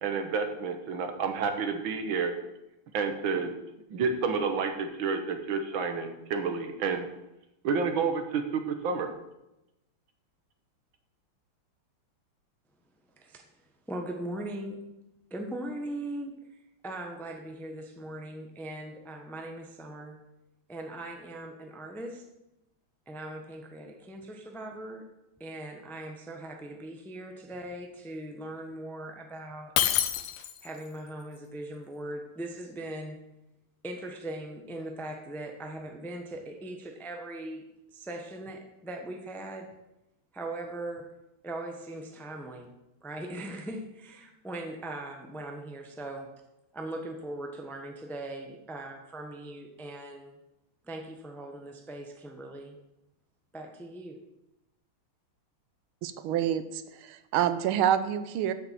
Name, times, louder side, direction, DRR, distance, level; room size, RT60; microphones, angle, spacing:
voice 1, 0.0-2.4 2.9-3.5 3.9-7.1 7.6-9.1, right 5 dB, 70° right, 7 dB, 1.8 m, -29 dB
voice 2, 13.9-14.8 15.3-16.3 16.8-20.2 20.7-22.2 23.1-25.1 25.4-30.0 30.6-33.2 33.8-37.6 37.9-39.7 40.3-41.1 41.4-42.7 43.0-46.3 46.7-50.4 50.8-52.8 53.5-54.2, right 1 dB, ahead, 3 dB, 0.6 m, -40 dB
Shatter, 29.8-30.8, left 11 dB, 90° left, 1.6 m, -27 dB
voice 3, 56.0-58.5, right 10 dB, 85° right, 12 dB, 1.5 m, -27 dB
7.7 x 6.8 x 7.6 m, 0.92 s
omnidirectional pair, 2.3 m